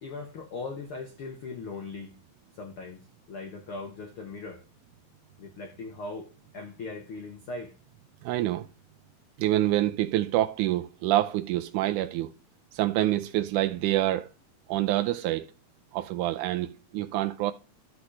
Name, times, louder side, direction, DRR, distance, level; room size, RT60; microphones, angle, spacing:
voice 1, 0.0-2.1 2.5-4.6 5.4-7.7, left 3 dB, 75° left, 1.2 m, -39 dB
voice 2, 8.2-8.7 9.4-12.3 12.7-14.3 14.7-15.5 15.9-17.5, right 14 dB, 80° right, 1.8 m, -26 dB
13.0 x 6.0 x 3.2 m
omnidirectional pair, 4.1 m